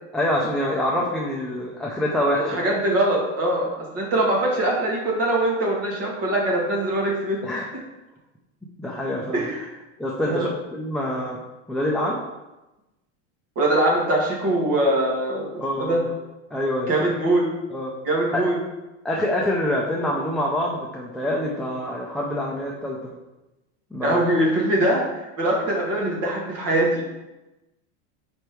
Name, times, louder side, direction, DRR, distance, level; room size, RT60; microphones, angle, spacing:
voice 1, 0.1-2.6 7.4-7.7 8.8-9.5 10.0-11.4 11.7-12.2 15.6-16.1 16.5-16.9 17.7-17.9 19.0-23.1 23.9-24.2, left 1 dB, ahead, -3 dB, 0.4 m, -26 dB
voice 2, 2.4-7.4 9.3-9.7 10.2-10.5 13.6-16.0 16.9-17.5 18.0-18.6 24.0-25.0 25.4-27.0, right 1 dB, 40° right, -2 dB, 1.9 m, -22 dB
5.1 x 4.3 x 4.6 m, 1.0 s
supercardioid pair, 140°, 36 cm